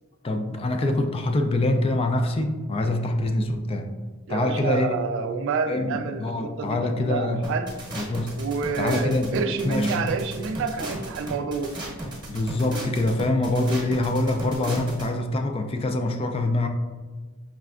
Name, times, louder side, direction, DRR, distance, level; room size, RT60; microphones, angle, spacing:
voice 1, 0.2-3.9 4.3-4.9 5.7-7.4 8.0-8.3 8.8-10.1 12.3-16.7, left 2 dB, 25° left, 5 dB, 0.3 m, -25 dB
voice 2, 4.3-7.8 8.4-11.8, right 5 dB, 60° right, 9 dB, 0.3 m, -28 dB
sound 1, 7.4-15.1, right 1 dB, 20° right, 0.9 m, -35 dB
5.0 x 3.2 x 2.4 m, 1.4 s
head